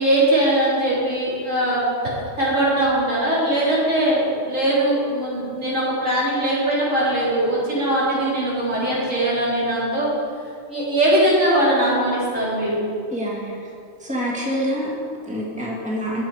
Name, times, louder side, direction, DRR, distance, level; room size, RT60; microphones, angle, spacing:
voice 1, 0.0-10.1 10.7-12.8, right 1 dB, 75° right, -8 dB, 3.9 m, -21 dB
voice 2, 13.1-13.6 14.0-16.3, equal, 5° right, -4 dB, 2.0 m, -26 dB
12.5 x 9.4 x 4.8 m, 2.3 s
omnidirectional pair, 1.3 m